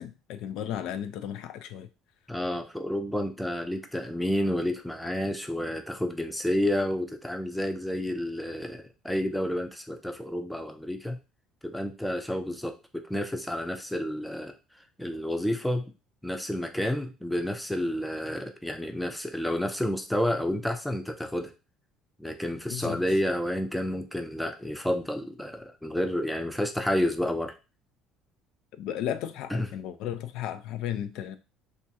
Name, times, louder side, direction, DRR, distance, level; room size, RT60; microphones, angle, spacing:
voice 1, 0.0-1.9 22.7-23.0 28.8-31.4, left 10 dB, 65° left, 0.3 m, -34 dB
voice 2, 2.3-11.2 11.6-14.5 15.0-15.9 16.2-21.5 22.2-27.5 29.5-29.7, left 1 dB, 5° left, 0.5 m, -30 dB
2.9 x 2.4 x 2.7 m
hypercardioid pair, 60°, 0 cm